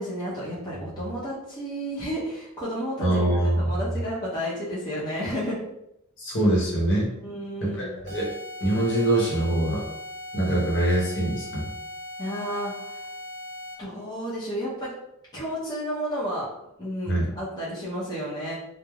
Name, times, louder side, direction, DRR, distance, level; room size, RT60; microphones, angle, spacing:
voice 1, 0.0-3.3 3.6-5.6 7.2-7.9 12.2-12.9 13.8-14.9 15.3-16.5 16.8-18.6, equal, 20° left, -9 dB, 0.7 m, -31 dB
voice 2, 3.0-3.8 6.2-7.1 7.6-8.3 8.6-9.8 10.3-11.7 17.1-17.3, right 1 dB, 55° left, -4 dB, 0.9 m, -24 dB
sound 1, 8.1-14.0, left 1 dB, 50° right, 0.5 m, -39 dB
3.1 x 2.0 x 2.3 m, 0.83 s
head